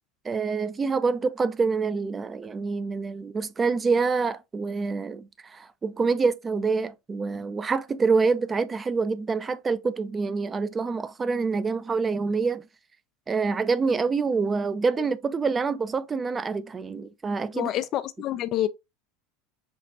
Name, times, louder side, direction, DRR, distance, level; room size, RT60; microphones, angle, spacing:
voice 1, 0.2-12.6 13.3-17.7, right 4 dB, 25° right, 0.5 m, -26 dB
voice 2, 17.5-18.7, left 13 dB, 50° left, 0.4 m, -27 dB
6.0 x 2.4 x 2.7 m
hypercardioid pair, 80°, 0 cm